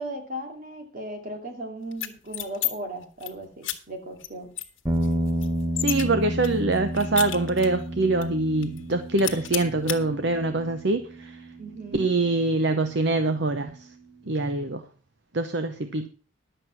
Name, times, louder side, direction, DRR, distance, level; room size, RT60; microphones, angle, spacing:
voice 1, 0.0-4.5 11.6-12.1, right 1 dB, 45° right, 4 dB, 2.6 m, -37 dB
sound 1, 1.9-2.7 3.0-3.3 3.6-3.8 4.2-4.3 4.6-6.0 6.4-7.8 8.2-8.3 8.6-8.9 9.2-10.0, left 13 dB, 80° left, 1.6 m, -31 dB
sound 2, 4.8-13.2, right 1 dB, 15° right, 1.2 m, -31 dB
voice 2, 5.8-11.4 11.9-13.9 14.3-14.8 15.3-16.1, right 2 dB, 60° right, 9 dB, 0.8 m, -24 dB
11.0 x 7.9 x 5.9 m, 0.39 s
head